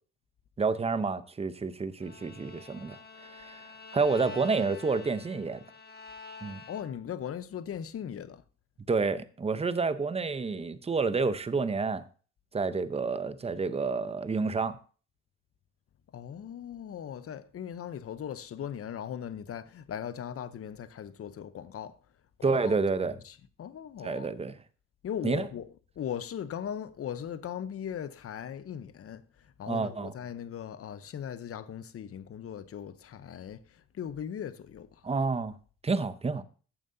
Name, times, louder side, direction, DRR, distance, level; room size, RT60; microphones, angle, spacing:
voice 1, 0.6-3.6 3.9-5.6 6.4-6.6 8.9-12.0 12.5-14.8 22.4-23.2 24.0-24.5 25.2-25.5 29.7-30.1 35.0-35.5 35.8-36.4, right 4 dB, 20° right, 0.7 m, -29 dB
Bowed string instrument, 2.0-7.2, left 4 dB, 30° left, 1.4 m, -47 dB
voice 2, 6.7-8.4 16.1-22.0 22.4-24.3 25.0-25.7 26.0-35.0, left 9 dB, 50° left, 0.8 m, -39 dB
14.0 x 7.3 x 2.7 m
cardioid pair, 90°, 30 cm